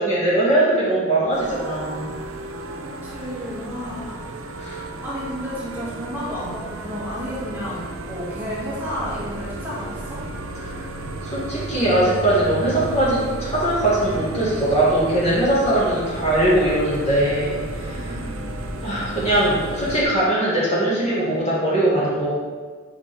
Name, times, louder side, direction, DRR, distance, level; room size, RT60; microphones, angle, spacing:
voice 1, 0.0-2.1 4.6-4.8 10.6-10.7 11.2-18.1 18.8-22.4, right 1 dB, 30° left, -8 dB, 1.8 m, -21 dB
sound 1, 1.3-20.0, right 2 dB, 70° right, 0.7 m, -33 dB
voice 2, 3.0-4.3 5.0-10.2 17.9-18.5, equal, 10° right, -9 dB, 2.1 m, -32 dB
8.3 x 5.2 x 3.4 m, 1.5 s
head